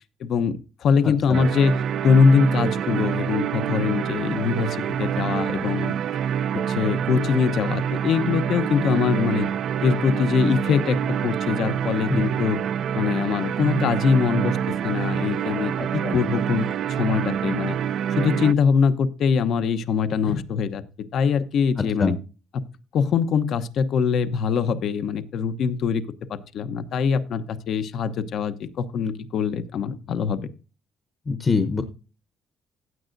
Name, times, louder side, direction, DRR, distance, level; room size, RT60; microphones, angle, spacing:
voice 1, 0.2-1.8 2.0-5.9 6.5-9.5 9.8-11.0 11.2-12.6 12.9-17.8 18.1-20.8 21.1-22.1 22.9-26.0 26.3-30.4, left 6 dB, 65° left, 12 dB, 0.8 m, -23 dB
voice 2, 1.0-1.4 12.1-12.2 15.8-16.2 21.8-22.2 31.3-31.8, left 4 dB, 30° left, 9 dB, 0.9 m, -25 dB
sound 1, 1.3-18.5, right 8 dB, 65° right, 0.4 m, -26 dB
15.5 x 8.8 x 2.6 m, 0.34 s
cardioid pair, 100°, 0 cm